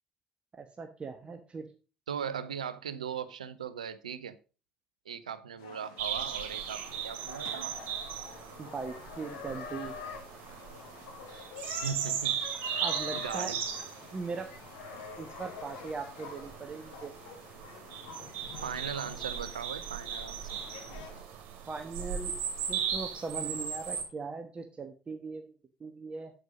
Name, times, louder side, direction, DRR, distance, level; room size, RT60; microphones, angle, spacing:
voice 1, 0.6-1.7 8.6-10.0 12.8-13.5 14.1-14.5 15.2-17.1 21.7-22.3 22.7-25.5 25.8-26.3, right 4 dB, 30° right, 5 dB, 1.2 m, -39 dB
voice 2, 2.1-4.4 5.0-7.8 11.8-12.4 13.1-13.6 18.6-20.6, right 7 dB, 80° right, 14 dB, 0.7 m, -38 dB
sound 1, 5.6-21.2, left 6 dB, 70° left, 1.7 m, -47 dB
sound 2, 6.0-24.0, right 8 dB, 60° right, 2.6 m, -38 dB
8.0 x 7.8 x 5.1 m, 0.34 s
figure-of-eight pair, 55°, 4 cm